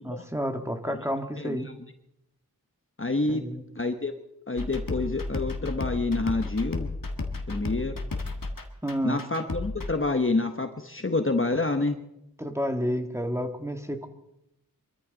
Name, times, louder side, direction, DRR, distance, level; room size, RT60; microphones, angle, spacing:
voice 1, 0.0-1.7 3.2-3.6 8.8-9.2 12.4-14.1, equal, 5° right, 5 dB, 1.8 m, -30 dB
voice 2, 1.4-1.7 3.0-3.4 3.8-4.1 4.5-6.9 7.5-8.0 9.0-12.0, left 3 dB, 35° left, 7 dB, 1.1 m, -28 dB
sound 1, 4.6-9.9, left 3 dB, 60° left, 1.8 m, -33 dB
24.0 x 14.0 x 4.0 m, 0.83 s
wide cardioid pair, 45°, 37 cm